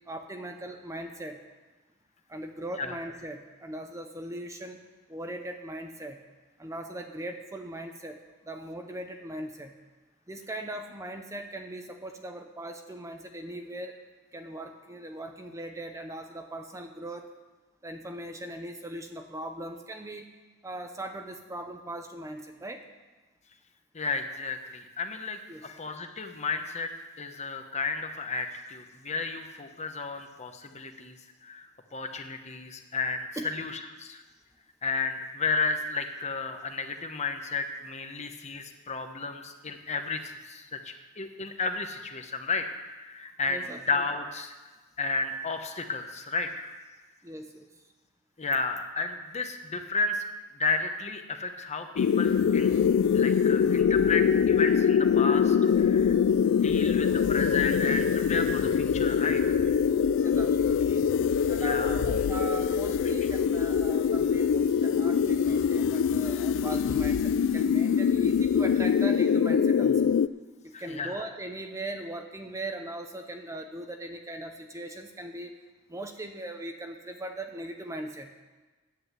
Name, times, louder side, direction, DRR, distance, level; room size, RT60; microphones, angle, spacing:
voice 1, 0.1-1.4 2.3-4.8 5.1-6.2 6.6-8.2 8.4-9.7 10.3-14.0 14.3-17.3 17.8-20.3 20.6-22.8 25.5-25.7 33.4-33.5 43.5-43.8 47.2-47.7 60.2-61.1 61.5-70.0 70.6-75.5 75.9-78.3, right 1 dB, 15° right, 5 dB, 0.7 m, -39 dB
voice 2, 23.9-26.9 27.2-31.1 31.4-31.7 31.9-34.2 34.8-44.5 45.0-46.8 48.4-50.2 50.6-52.7 53.1-56.1 56.4-59.6 61.6-62.0 70.7-71.1, left 4 dB, 30° left, 6 dB, 0.9 m, -33 dB
sound 1, 52.0-70.3, left 7 dB, 55° left, 0.3 m, -24 dB
10.5 x 7.8 x 8.1 m, 1.3 s
head